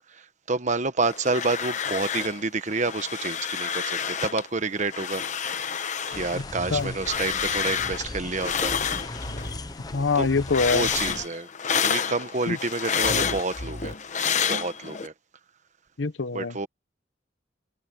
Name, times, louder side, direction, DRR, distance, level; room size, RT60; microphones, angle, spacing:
voice 1, 0.1-5.2 6.1-8.7 10.1-10.3 10.6-11.5 11.8-13.9 14.4-15.1 16.3-16.7, right 3 dB, 40° right, 1.2 m, -29 dB
sound 1, 1.0-2.4 2.7-4.5 4.8-9.5 9.9-15.1, left 7 dB, 40° left, 1.1 m, -29 dB
sound 2, 6.1-11.3, left 2 dB, 20° left, 0.8 m, -38 dB
sound 3, 6.5-6.9 8.6-9.6 10.8-11.2 13.0-13.9, equal, 55° left, 3.3 m, -37 dB
voice 2, 9.9-10.9 12.5-12.6 16.0-16.6, left 4 dB, 85° left, 0.9 m, -24 dB
head